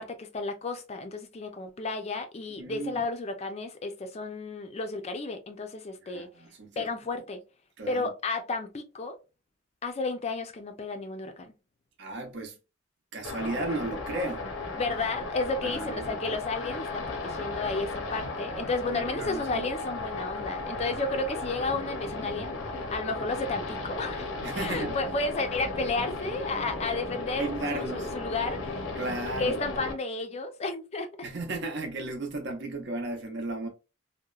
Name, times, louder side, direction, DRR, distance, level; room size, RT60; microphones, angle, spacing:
voice 1, 0.0-6.3 6.8-7.4 7.9-9.2 9.8-11.5 14.8-24.3 24.6-28.8 29.4-31.3, left 3 dB, 30° left, 0.4 m, -32 dB
voice 2, 2.6-3.0 6.0-6.9 7.8-8.1 12.0-12.6 13.1-14.4 15.6-16.2 18.9-19.6 24.4-25.0 27.4-28.1 29.0-29.6 31.2-33.7, right 2 dB, 55° right, 0.6 m, -35 dB
sound 1, 13.2-29.9, left 2 dB, 80° left, 0.6 m, -35 dB
2.8 x 2.1 x 2.3 m
head